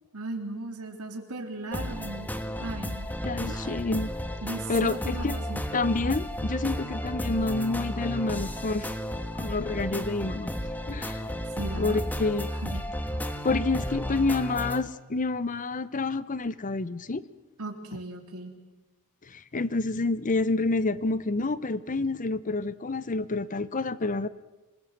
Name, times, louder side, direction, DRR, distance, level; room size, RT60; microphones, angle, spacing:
voice 1, 0.1-2.3 2.6-3.1 3.5-3.9 4.4-5.6 11.6-12.0 12.6-12.8 17.6-18.5, right 2 dB, 85° right, 3 dB, 3.6 m, -37 dB
sound 1, 1.7-14.8, equal, 10° left, 1.4 m, -33 dB
voice 2, 3.2-4.1 4.7-5.4 5.7-8.9 9.3-10.5 10.9-11.2 11.8-12.5 13.4-17.2 19.3-24.3, left 3 dB, 35° left, 16 dB, 0.8 m, -28 dB
26.5 x 20.5 x 7.5 m, 1.1 s
head